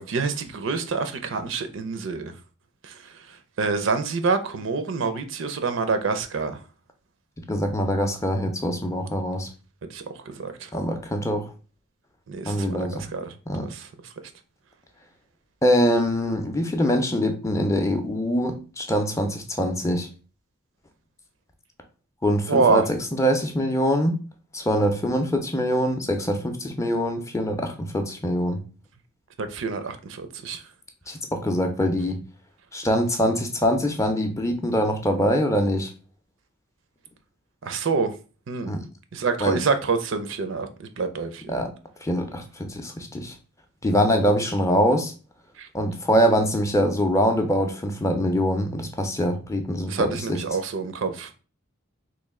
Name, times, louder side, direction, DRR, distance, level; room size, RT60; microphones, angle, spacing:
voice 1, 0.0-2.3 2.8-2.9 3.6-6.6 9.9-10.7 12.3-13.3 13.6-13.9 22.5-22.8 29.4-30.6 37.6-38.1 38.5-38.7 39.1-41.7 45.6-45.7 49.9-51.3, right 4 dB, 65° right, 0.5 m, -26 dB
voice 2, 7.5-9.5 10.7-11.5 12.5-13.0 13.5-13.7 15.6-20.1 22.2-24.2 24.5-28.6 31.1-32.2 32.7-35.9 38.7-38.8 39.4-39.6 41.5-41.7 42.0-43.3 43.8-45.1 45.7-50.4, equal, 15° left, 0.4 m, -24 dB
3.1 x 2.5 x 3.5 m
head